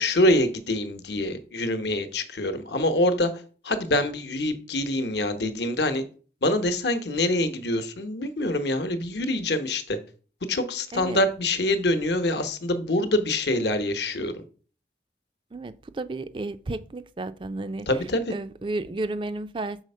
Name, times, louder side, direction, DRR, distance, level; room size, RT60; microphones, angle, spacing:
voice 1, 0.0-3.3 3.6-6.0 6.4-10.0 10.5-14.4 17.9-18.3, left 1 dB, 70° left, 0.9 m, -25 dB
voice 2, 15.5-17.9 18.3-19.8, right 2 dB, 30° right, 0.4 m, -32 dB
6.4 x 4.2 x 5.4 m
head